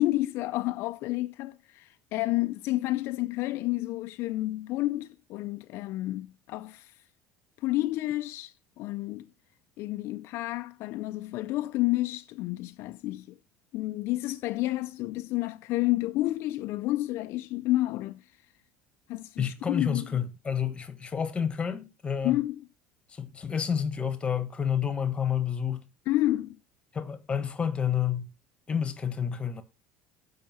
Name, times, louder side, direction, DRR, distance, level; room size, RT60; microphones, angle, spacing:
voice 1, 0.0-6.9 7.6-9.3 9.8-13.3 13.7-18.2 19.1-20.1 22.2-22.6 26.1-26.6, left 17 dB, 60° left, 0.4 m, -30 dB
voice 2, 19.4-22.4 23.1-25.8 26.9-28.3 28.7-29.6, left 8 dB, 20° left, 1.2 m, -29 dB
7.5 x 5.5 x 5.5 m
cardioid pair, 120°, 5 cm